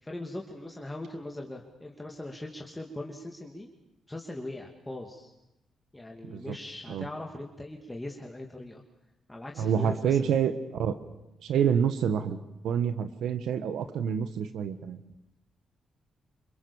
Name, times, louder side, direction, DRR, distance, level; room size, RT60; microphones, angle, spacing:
voice 1, 0.0-3.7 4.1-5.3 5.9-8.8 9.3-10.3, left 1 dB, 10° left, 1 dB, 2.8 m, -40 dB
voice 2, 9.6-10.5 10.8-11.0 11.4-12.4 12.6-15.0, right 8 dB, 85° right, 10 dB, 1.5 m, -27 dB
27.0 x 25.0 x 7.3 m, 0.89 s
cardioid pair, 105°, 0 cm